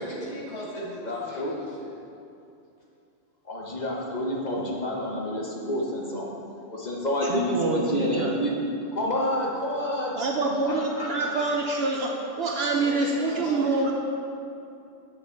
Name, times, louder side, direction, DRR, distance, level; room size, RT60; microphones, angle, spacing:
voice 1, 0.0-2.0 12.8-13.9, equal, 55° left, -6 dB, 2.0 m, -38 dB
voice 2, 1.0-1.5 3.5-6.3 6.7-8.5 8.9-10.1 10.6-11.4, left 1 dB, 35° left, -2 dB, 1.1 m, -29 dB
voice 3, 7.2-8.3 10.1-13.9, right 3 dB, 60° right, 1 dB, 0.8 m, -26 dB
7.3 x 6.1 x 4.4 m, 2.7 s
omnidirectional pair, 1.4 m